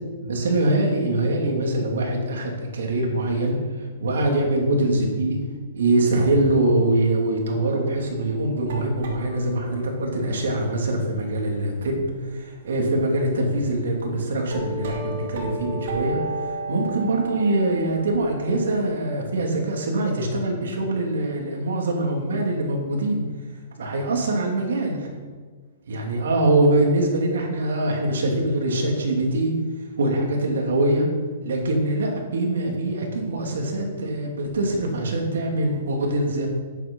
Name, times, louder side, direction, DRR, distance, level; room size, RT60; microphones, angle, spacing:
voice 1, 0.2-5.4 5.7-23.2 23.8-25.1 25.9-29.5 30.0-31.1 31.4-36.5, right 1 dB, 85° right, 1 dB, 3.0 m, -23 dB
sound 1, 7.6-12.2 12.6-12.7 13.1-13.6 14.1-18.7, right 1 dB, 50° right, 2.3 m, -35 dB
11.0 x 8.5 x 5.6 m, 1.5 s
hypercardioid pair, 180°, 0 cm